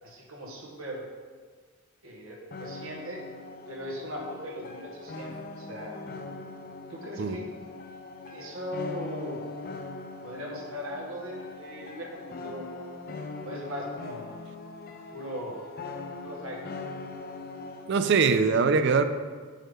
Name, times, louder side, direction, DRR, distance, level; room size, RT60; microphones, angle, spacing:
voice 1, 0.0-1.0 2.0-3.2 3.7-5.3 5.6-5.9 6.9-7.4 8.3-9.4 10.2-12.6 13.4-14.3 15.1-15.6 16.2-16.6, equal, 70° right, -2 dB, 1.5 m, -38 dB
sound 1, 2.5-17.9, left 3 dB, 40° left, 0.5 m, -41 dB
voice 2, 17.9-19.0, right 5 dB, 50° right, 10 dB, 0.4 m, -22 dB
7.4 x 5.7 x 3.6 m, 1.5 s
head